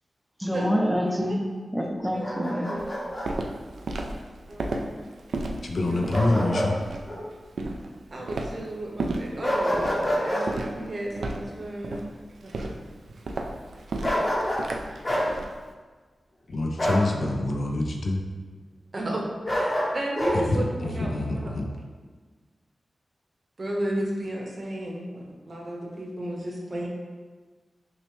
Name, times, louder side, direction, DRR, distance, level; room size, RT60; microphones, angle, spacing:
voice 1, 0.4-2.7, equal, 5° right, 0.4 m, -27 dB
voice 2, 1.0-1.4 2.1-2.9 4.5-4.8 5.8-6.6 8.1-12.0 12.4-12.5 18.9-21.5 23.6-26.9, right 1 dB, 45° right, 0.8 m, -33 dB
Bark, 2.2-3.3 6.1-6.7 7.1-7.2 9.4-10.5 14.0-14.7 15.0-15.3 16.8-17.1 19.4-20.4, equal, 30° left, 0.9 m, -26 dB
Walk footsteps, 2.8-15.6, right 2 dB, 85° right, 0.3 m, -34 dB
voice 3, 5.6-6.7 16.5-18.2 20.3-21.7, left 2 dB, 60° left, 0.4 m, -26 dB
6.0 x 2.1 x 3.1 m
wide cardioid pair, 100°, 0 cm